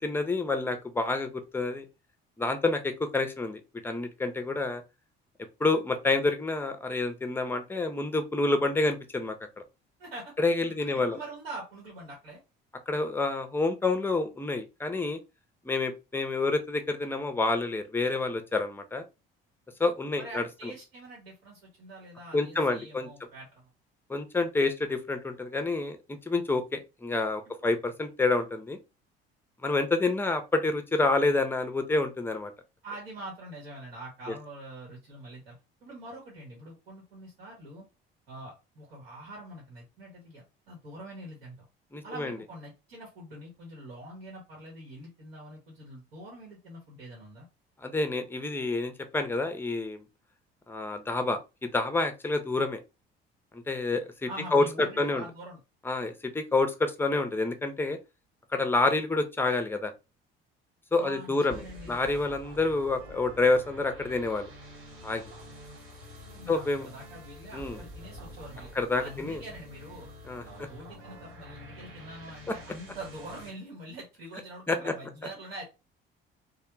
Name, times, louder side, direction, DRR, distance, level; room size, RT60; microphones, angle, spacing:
voice 1, 0.0-1.8 2.4-4.8 5.6-9.4 10.4-11.2 12.9-15.2 15.6-19.0 19.8-20.7 22.3-23.1 24.1-26.0 26.3-28.8 29.6-32.5 41.9-42.4 47.8-50.0 50.7-52.8 53.5-55.2 55.8-58.0 58.5-59.9 60.9-61.6 61.9-64.5 65.0-65.2 66.5-66.9 67.5-67.8 68.7-69.4 70.2-70.7 74.7-74.9, left 3 dB, 5° left, 7 dB, 0.6 m, -28 dB
voice 2, 10.0-10.3 10.8-12.4 20.2-23.6 32.8-35.5 35.8-37.8 38.3-41.7 42.0-47.5 54.3-55.6 61.0-62.0 66.3-68.7 69.0-70.1 70.4-75.6, right 1 dB, 75° right, -2 dB, 1.1 m, -44 dB
sound 1, 61.5-73.5, equal, 55° right, 1.5 m, -47 dB
3.2 x 2.2 x 3.0 m, 0.27 s
figure-of-eight pair, 50°, 30 cm